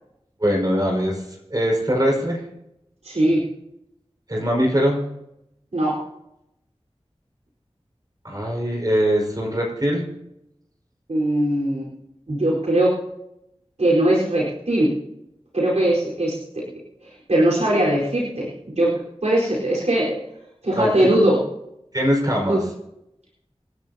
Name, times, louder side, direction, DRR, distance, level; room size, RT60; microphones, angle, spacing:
voice 1, 0.4-1.2 1.5-2.4 4.3-5.1 8.2-10.1 20.7-20.9 21.9-22.6, equal, 35° right, -1 dB, 5.3 m, -21 dB
voice 2, 3.0-3.4 5.7-6.0 11.1-11.9 12.3-13.0 13.8-14.9 15.5-16.6 17.0-18.5 18.8-20.2 20.6-21.4 22.5-22.6, right 1 dB, 85° right, -5 dB, 4.4 m, -20 dB
28.0 x 11.0 x 2.9 m, 0.85 s
wide cardioid pair, 55°, 11 cm